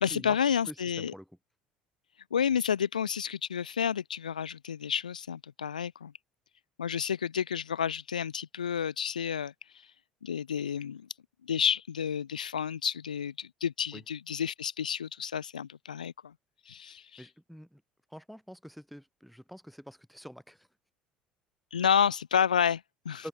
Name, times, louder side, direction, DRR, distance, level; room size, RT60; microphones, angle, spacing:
voice 1, 0.0-1.1 2.3-6.1 6.8-9.9 10.2-11.1 11.4-16.3 16.7-17.2 21.7-23.2, left 8 dB, 80° left, 0.5 m, -30 dB
voice 2, 0.6-1.3 13.9-14.0 17.2-17.8 18.1-20.7 23.2-23.3, equal, ahead, 4.2 m, -46 dB
figure-of-eight pair, 60°, 4 cm